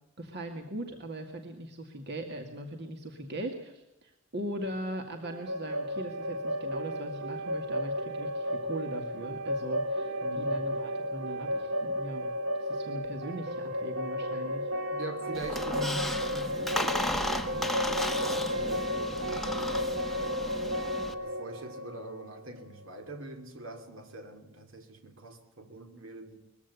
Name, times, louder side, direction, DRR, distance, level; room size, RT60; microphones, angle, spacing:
voice 1, 0.2-12.3 12.5-14.7, right 1 dB, 55° right, 2.2 m, -39 dB
sound 1, 5.2-23.0, equal, 85° right, 1.4 m, -33 dB
voice 2, 10.2-10.6 14.9-19.8 21.1-26.4, right 1 dB, 70° right, 2.9 m, -43 dB
Squeak, 15.3-21.1, left 1 dB, ahead, 1.1 m, -34 dB
21.0 x 15.5 x 8.3 m
head